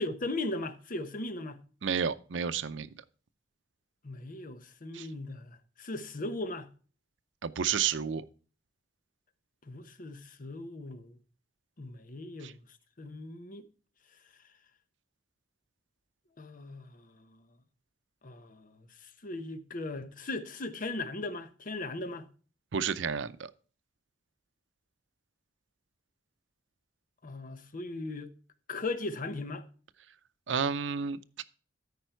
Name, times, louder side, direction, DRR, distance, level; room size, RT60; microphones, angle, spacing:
voice 1, 0.0-1.6 4.0-6.7 9.7-11.2 11.8-12.6 13.0-13.6 16.4-17.4 18.2-22.3 27.2-28.3 28.7-29.6, left 2 dB, 50° left, 0.9 m, -38 dB
voice 2, 1.8-2.9 4.9-5.1 7.4-8.2 12.4-12.5 22.7-23.5 30.5-31.4, right 7 dB, 85° right, 0.6 m, -31 dB
13.0 x 5.3 x 4.5 m
head